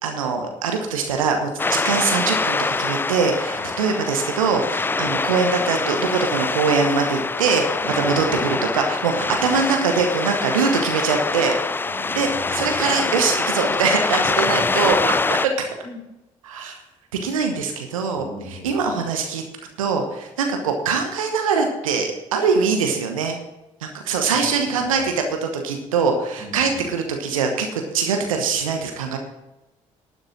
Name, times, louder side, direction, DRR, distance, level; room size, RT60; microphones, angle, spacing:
voice 1, 0.0-7.6 8.0-11.8 12.1-15.2 15.6-15.7 16.4-16.8 17.2-18.2 18.6-19.4 19.8-23.3 23.8-25.1 25.4-29.2, right 5 dB, 80° right, 4 dB, 1.1 m, -22 dB
sound 1, 1.6-15.5, left 3 dB, 10° left, 0.3 m, -24 dB
voice 2, 7.8-8.5 9.1-9.4 11.8-12.8 14.3-14.7 15.8-16.0 18.2-19.1 24.3-25.1 26.4-26.9, left 2 dB, 40° left, 1 dB, 3.7 m, -38 dB
12.0 x 6.6 x 7.4 m, 0.96 s
figure-of-eight pair, 45°, 17 cm